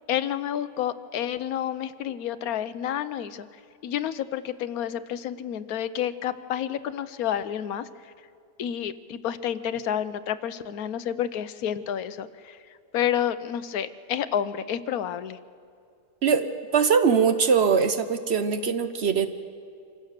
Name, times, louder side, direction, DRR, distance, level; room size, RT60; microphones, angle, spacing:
voice 1, 0.1-3.5 3.8-7.9 8.6-12.6 12.9-15.4, left 10 dB, 80° left, 13 dB, 1.2 m, -29 dB
voice 2, 16.2-19.3, right 6 dB, 50° right, 9 dB, 0.9 m, -22 dB
26.0 x 16.0 x 6.6 m, 2.4 s
omnidirectional pair, 1.5 m